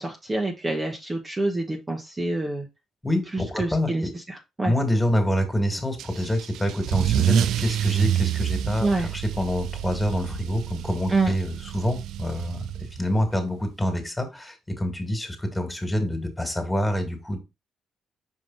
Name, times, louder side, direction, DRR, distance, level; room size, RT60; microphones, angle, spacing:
voice 1, 0.0-2.7 3.6-4.7 8.8-9.1 11.1-11.3, right 2 dB, 20° right, 1.2 m, -27 dB
voice 2, 3.0-4.1 4.6-17.4, left 1 dB, 10° left, 2.2 m, -26 dB
Car / Engine starting / Accelerating revving vroom, 6.0-13.2, right 11 dB, 80° right, 0.4 m, -28 dB
5.5 x 4.9 x 4.0 m
cardioid pair, 90°, 0 cm